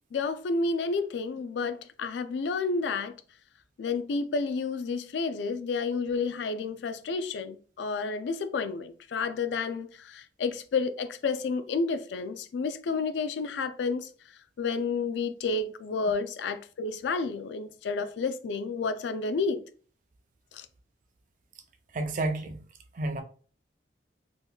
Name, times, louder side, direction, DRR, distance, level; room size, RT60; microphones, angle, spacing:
voice 1, 0.1-3.1 3.8-14.1 14.6-19.6 20.5-20.7, left 4 dB, 70° left, 0.3 m, -30 dB
voice 2, 21.9-22.6 22.9-23.2, right 2 dB, 45° right, 0.4 m, -30 dB
3.4 x 2.9 x 2.2 m
head